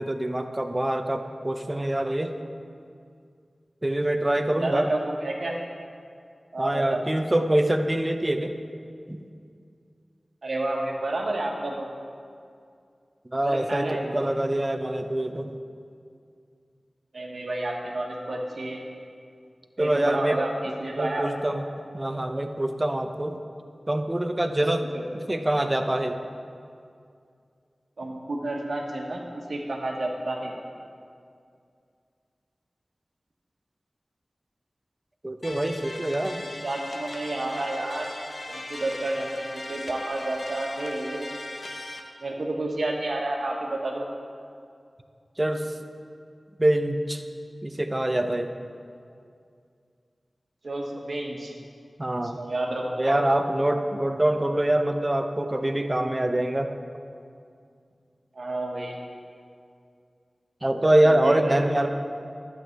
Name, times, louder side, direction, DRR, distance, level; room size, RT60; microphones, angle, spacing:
voice 1, 0.0-2.3 3.8-4.9 6.6-8.5 9.1-9.3 13.3-15.5 19.8-20.4 21.0-21.6 21.9-23.4 23.9-24.9 25.1-26.2 35.2-36.4 45.4-45.7 46.6-47.2 47.6-48.5 52.0-52.4 53.0-56.8 60.6-61.9, right 1 dB, 25° right, 6 dB, 0.7 m, -25 dB
voice 2, 4.6-5.5 6.5-7.0 10.4-11.9 13.4-14.3 17.1-18.8 19.8-21.3 24.9-25.0 28.0-29.2 29.5-30.5 36.6-38.1 38.5-39.4 39.7-41.3 42.2-44.0 50.6-51.5 52.2-53.3 54.4-54.5 58.3-59.0 61.0-61.9, right 2 dB, 75° right, 0 dB, 1.4 m, -30 dB
sound 1, 35.4-42.0, left 2 dB, 70° left, 0.9 m, -38 dB
11.0 x 8.5 x 4.6 m, 2.3 s
wide cardioid pair, 50°, 0 cm